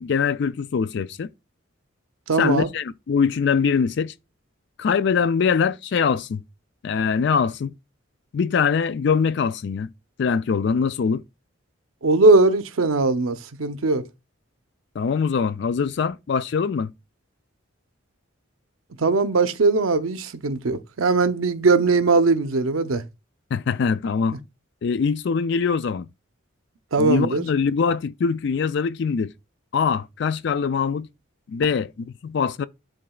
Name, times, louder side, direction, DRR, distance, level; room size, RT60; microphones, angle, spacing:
voice 1, 0.0-1.3 2.4-4.1 4.8-6.4 6.8-7.7 8.3-9.9 10.2-11.2 15.0-16.9 23.5-24.4 24.8-26.1 27.0-29.3 29.7-31.1 31.5-32.6, left 6 dB, 55° left, 0.3 m, -23 dB
voice 2, 2.3-2.7 12.0-14.0 19.0-23.0 26.9-27.4, right 3 dB, 90° right, 0.7 m, -20 dB
10.5 x 3.8 x 2.3 m
head